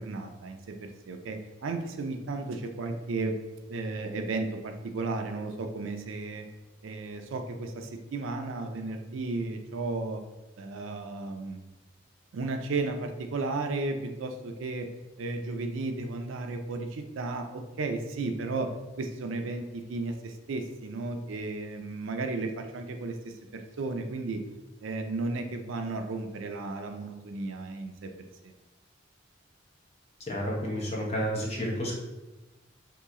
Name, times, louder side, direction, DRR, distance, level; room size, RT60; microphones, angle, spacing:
voice 1, 0.0-3.4 3.7-6.4 6.8-10.2 10.6-11.6 12.3-14.9 15.2-18.7 19.0-24.4 24.8-28.1 28.4-28.5, right 3 dB, 80° right, 5 dB, 0.4 m, -34 dB
voice 2, 30.3-32.0, equal, 30° left, -3 dB, 0.8 m, -30 dB
3.1 x 2.9 x 3.6 m, 1.1 s
head